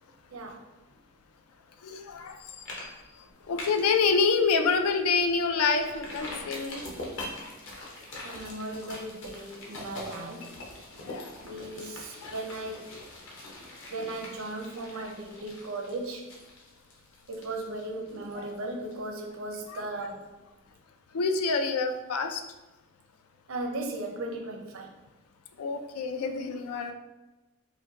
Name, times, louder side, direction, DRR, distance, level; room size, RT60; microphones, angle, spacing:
voice 1, 0.3-0.6 8.2-10.5 11.4-12.9 13.9-16.3 17.3-20.3 23.5-24.9, right 2 dB, 70° right, 2 dB, 0.6 m, -37 dB
voice 2, 1.8-2.4 2.7-2.9 3.5-6.8 7.4-7.5 11.0-11.3 12.2-12.3 21.1-22.4 25.6-26.9, left 4 dB, 85° left, 7 dB, 0.4 m, -27 dB
sound 1, 2.1-2.3 2.7-2.9 3.2-3.9 4.4-4.5 4.9-5.0 5.8-19.3 19.7-19.8, left 1 dB, 55° left, 0.9 m, -43 dB
4.9 x 2.2 x 2.8 m, 1.1 s
head